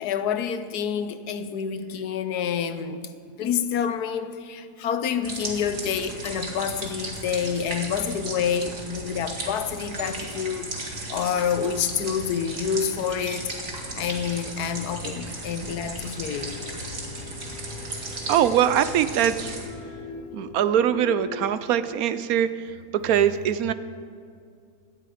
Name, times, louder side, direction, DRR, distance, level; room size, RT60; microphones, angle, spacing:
voice 1, 0.0-3.0 3.4-10.7 11.1-13.5 13.9-16.5, left 7 dB, 85° left, 10 dB, 1.4 m, -28 dB
sound 1, 5.2-19.7, right 2 dB, 55° right, 2.4 m, -36 dB
sound 2, 16.3-21.9, left 5 dB, 70° left, 1.4 m, -41 dB
voice 2, 18.3-19.6 20.3-22.5 22.9-23.7, right 10 dB, 75° right, 13 dB, 1.0 m, -22 dB
17.5 x 11.5 x 5.0 m, 2.3 s
omnidirectional pair, 1.6 m